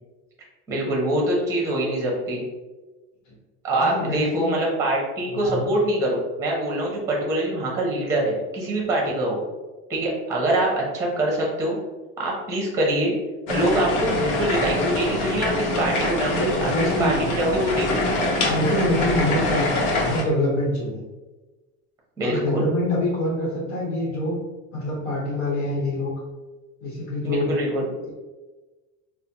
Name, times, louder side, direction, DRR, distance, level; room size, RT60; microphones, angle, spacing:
voice 1, 0.7-2.4 3.6-9.4 9.9-11.8 12.2-13.1 13.5-18.5 22.2-22.7 27.2-27.9, right 1 dB, 10° right, -2 dB, 0.7 m, -24 dB
voice 2, 3.8-4.5 5.3-5.7 16.3-17.3 18.4-21.0 22.2-24.4 24.7-26.1 26.8-27.5 28.0-28.1, left 1 dB, 65° left, -5 dB, 1.1 m, -25 dB
sound 1, 13.5-20.2, left 2 dB, 90° left, 0.9 m, -24 dB
4.0 x 2.1 x 2.9 m, 1.2 s
cardioid pair, 160°, 34 cm